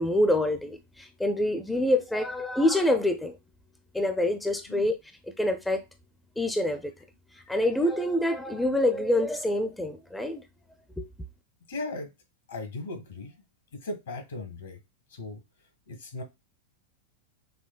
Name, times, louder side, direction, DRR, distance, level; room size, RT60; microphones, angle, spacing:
voice 1, 0.0-3.4 3.9-5.0 5.2-5.8 6.4-6.9 7.3-10.4 11.0-11.1, left 1 dB, 5° left, 0.4 m, -26 dB
voice 2, 11.7-12.1 12.5-13.3 13.7-14.8 15.1-15.4 15.9-16.2, left 2 dB, 65° left, 1.2 m, -37 dB
5.6 x 2.1 x 2.3 m
figure-of-eight pair, 90°, 0 cm